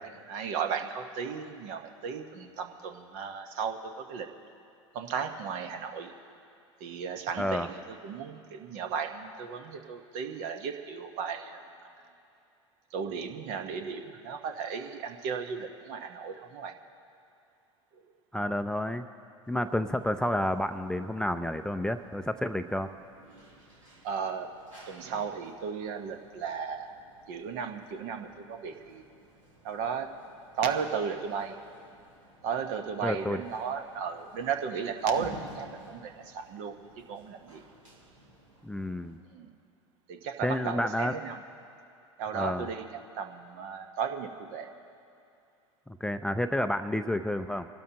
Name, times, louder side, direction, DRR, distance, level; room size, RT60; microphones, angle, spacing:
voice 1, 0.3-4.3 4.9-6.1 6.8-11.9 12.9-16.8 17.9-18.0 24.0-24.6 24.9-27.0 27.3-29.0 29.6-30.2 30.6-31.6 32.4-36.8 37.1-37.6 39.3-39.5 40.1-41.4 42.2-42.9 43.1-44.7, right 6 dB, 55° right, 6 dB, 1.2 m, -35 dB
voice 2, 7.4-7.7 18.3-19.1 19.5-22.9 33.0-33.4 38.6-39.2 40.4-41.1 42.3-42.7 45.9-47.7, left 1 dB, 5° left, 9 dB, 0.4 m, -30 dB
sound 1, 19.4-39.2, right 2 dB, 85° right, 2.9 m, -54 dB
25.0 x 12.0 x 2.9 m, 2.5 s
hypercardioid pair, 80°, 16 cm